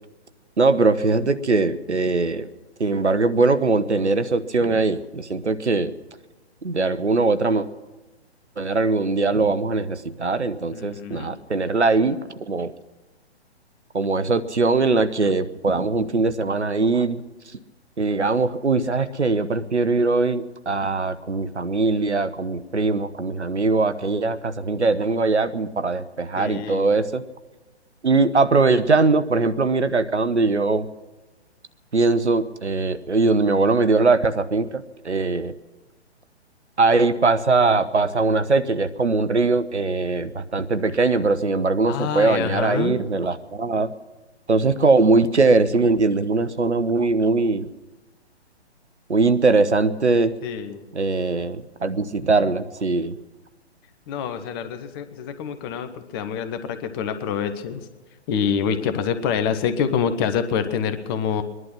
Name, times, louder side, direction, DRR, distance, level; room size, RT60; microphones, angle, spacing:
voice 1, 0.6-2.5 2.8-5.9 6.6-7.7 8.6-12.2 12.5-12.7 13.9-17.2 18.0-27.2 28.0-30.9 31.9-35.5 36.8-43.9 44.5-47.7 49.1-50.3 50.9-53.2, right 3 dB, 85° right, 13 dB, 0.9 m, -21 dB
voice 2, 10.7-11.3 26.4-27.0 41.9-43.0 50.4-50.8 54.1-57.9 58.3-61.4, left 7 dB, 20° left, 10 dB, 0.8 m, -26 dB
21.5 x 11.0 x 6.1 m, 1.2 s
figure-of-eight pair, 125°, 34 cm